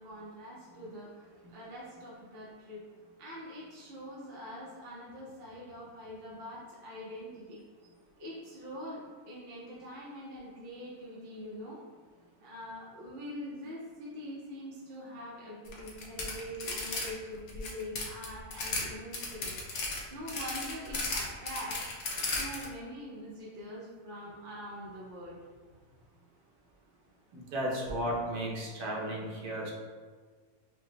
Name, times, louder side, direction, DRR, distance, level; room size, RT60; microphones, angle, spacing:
voice 1, 0.0-2.8 3.2-7.6 8.2-11.8 12.4-21.8 22.3-25.4, equal, 55° right, -6 dB, 0.6 m, -44 dB
sound 1, 15.7-17.1 17.3-18.9 19.1-22.7, left 3 dB, 75° left, 1.1 m, -35 dB
voice 2, 27.3-29.7, right 1 dB, 80° right, -3 dB, 1.3 m, -34 dB
5.0 x 2.0 x 3.0 m, 1.5 s
omnidirectional pair, 1.6 m